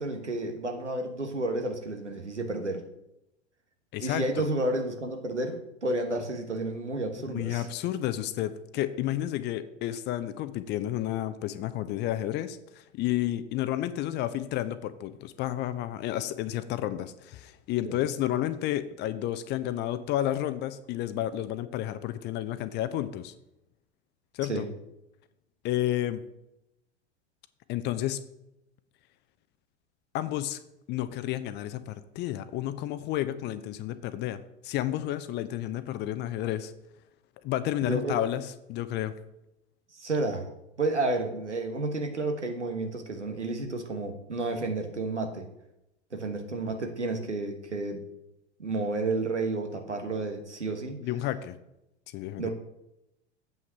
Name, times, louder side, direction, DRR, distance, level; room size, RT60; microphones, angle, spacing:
voice 1, 0.0-2.8 4.0-7.7 17.8-17.9 24.5-24.7 37.9-38.2 39.9-40.5 40.8-45.5 46.1-48.0 48.6-51.0 52.4-52.5, right 2 dB, 85° right, 5 dB, 1.4 m, -31 dB
voice 2, 3.9-4.5 7.3-23.3 24.3-24.7 25.6-26.2 27.7-28.2 30.1-30.6 30.9-36.7 37.4-39.1 51.0-51.5 52.1-52.5, left 13 dB, 30° left, 13 dB, 0.6 m, -31 dB
7.9 x 5.8 x 5.9 m, 0.85 s
figure-of-eight pair, 85°, 35 cm